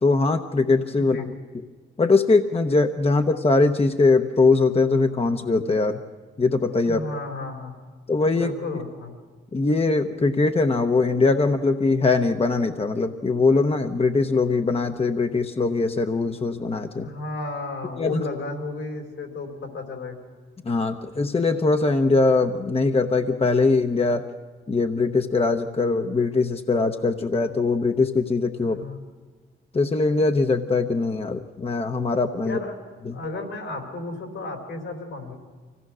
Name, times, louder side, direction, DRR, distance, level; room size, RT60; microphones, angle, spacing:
voice 1, 0.0-1.2 2.0-6.0 6.4-7.0 8.1-8.5 9.5-17.1 18.0-18.2 20.6-24.3 24.7-28.8 29.7-32.6 33.0-33.2, left 3 dB, 30° left, 6 dB, 0.9 m, -21 dB
voice 2, 1.0-1.3 6.8-7.8 8.3-9.1 17.0-20.2 28.6-29.0 32.4-32.7 33.1-35.3, left 3 dB, 80° left, 3 dB, 4.1 m, -33 dB
24.5 x 17.0 x 6.3 m, 1.4 s
supercardioid pair, 65°, 21 cm